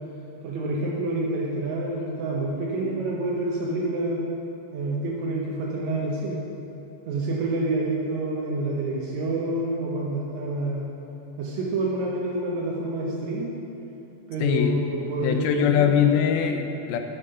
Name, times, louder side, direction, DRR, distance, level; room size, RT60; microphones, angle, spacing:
voice 1, 0.4-4.2 4.7-6.4 7.1-10.8 11.4-13.5 14.3-15.9, right 2 dB, 80° right, -3 dB, 1.6 m, -28 dB
voice 2, 14.4-14.7 15.2-17.0, left 8 dB, 85° left, 6 dB, 2.5 m, -22 dB
8.7 x 7.0 x 5.6 m, 2.9 s
omnidirectional pair, 4.3 m